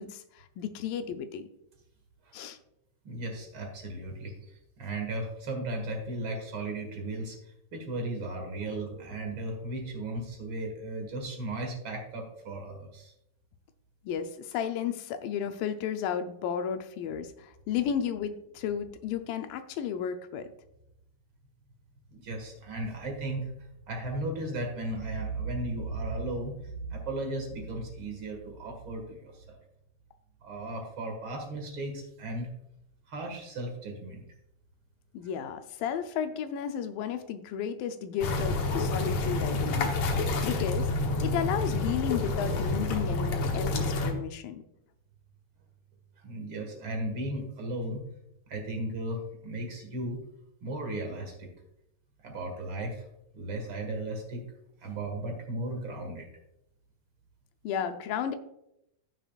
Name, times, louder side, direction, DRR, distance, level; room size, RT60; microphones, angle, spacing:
voice 1, 0.0-1.5 2.3-2.6 14.0-20.5 35.1-40.9 41.2-44.6 57.6-58.4, left 8 dB, 80° left, 8 dB, 2.3 m, -33 dB
voice 2, 3.0-4.5 4.8-13.1 22.1-23.5 23.9-29.6 30.4-32.5 33.1-34.3 46.2-48.0 48.5-50.2 50.6-51.5 52.2-53.0 53.3-54.5 54.8-56.3, right 2 dB, 45° right, 2 dB, 2.0 m, -36 dB
sound 1, 38.2-44.1, left 2 dB, 65° left, 1.7 m, -28 dB
15.5 x 6.1 x 2.4 m, 0.82 s
omnidirectional pair, 4.1 m